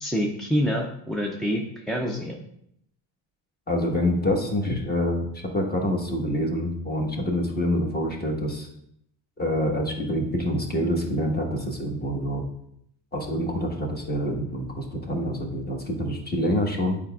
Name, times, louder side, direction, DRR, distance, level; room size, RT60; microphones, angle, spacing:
voice 1, 0.0-2.5, equal, ahead, 0 dB, 0.3 m, -27 dB
voice 2, 3.7-8.7 9.4-12.4 13.1-17.0, equal, 20° left, 1 dB, 1.2 m, -26 dB
8.3 x 4.9 x 2.3 m, 0.74 s
cardioid pair, 110°, 49 cm